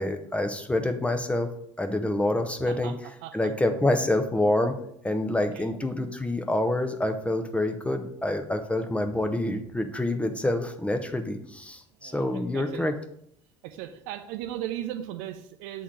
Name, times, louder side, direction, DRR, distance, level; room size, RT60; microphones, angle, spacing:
voice 1, 0.0-1.5 1.8-4.8 5.0-13.0, left 1 dB, 10° left, 6 dB, 0.7 m, -27 dB
voice 2, 12.0-12.9 13.6-15.8, right 12 dB, 60° right, 9 dB, 0.6 m, -37 dB
7.2 x 3.6 x 4.4 m, 0.71 s
figure-of-eight pair, 65°, 16 cm